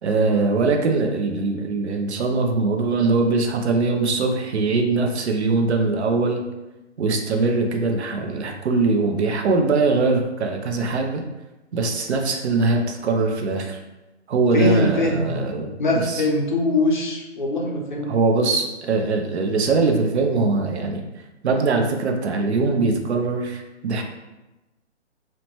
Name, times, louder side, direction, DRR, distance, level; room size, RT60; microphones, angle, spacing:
voice 1, 0.0-6.4 7.0-11.2 11.7-13.8 14.3-15.7 15.9-16.2 18.1-21.0 21.4-24.0, right 3 dB, 65° right, 3 dB, 0.6 m, -22 dB
voice 2, 14.5-15.3 15.8-18.1, left 2 dB, 45° left, 0 dB, 0.5 m, -22 dB
2.7 x 2.1 x 2.9 m, 1.0 s
hypercardioid pair, 160°, 35 cm